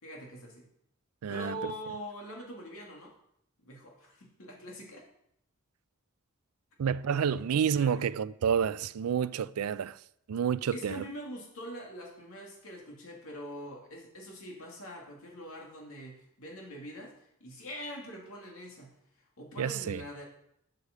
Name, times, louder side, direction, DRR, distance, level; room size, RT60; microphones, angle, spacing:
voice 1, 0.0-0.7 1.3-3.1 3.6-5.1 7.1-8.1 10.7-17.1 17.4-18.9 19.4-20.2, equal, 70° left, 2.5 m, -43 dB
voice 2, 1.2-1.6 6.8-10.0 10.3-11.0 19.6-20.0, right 7 dB, 90° right, 0.4 m, -29 dB
8.1 x 6.5 x 6.7 m
head